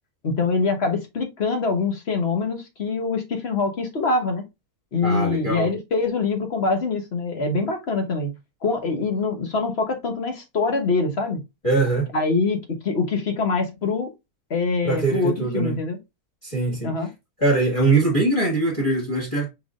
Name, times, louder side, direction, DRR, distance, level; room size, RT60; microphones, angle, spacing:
voice 1, 0.2-4.4 4.9-8.3 8.6-11.4 12.1-12.6 12.8-14.1 14.5-16.0 16.8-17.1, left 4 dB, 50° left, 1.2 m, -24 dB
voice 2, 5.0-5.7 11.6-12.1 14.8-15.8 16.4-16.9 17.4-19.5, right 3 dB, 20° left, 1.7 m, -22 dB
5.1 x 3.8 x 2.5 m
omnidirectional pair, 1.6 m